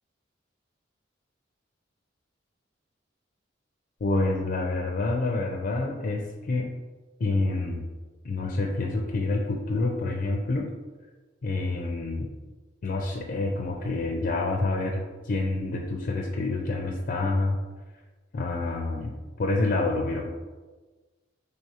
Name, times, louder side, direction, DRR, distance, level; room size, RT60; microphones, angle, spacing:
voice 1, 4.0-6.7 7.2-7.8 8.2-10.7 11.4-12.3 12.8-17.6 18.3-19.1 19.4-20.3, left 2 dB, 50° left, 1 dB, 0.4 m, -27 dB
4.6 x 3.4 x 2.8 m, 1.3 s
head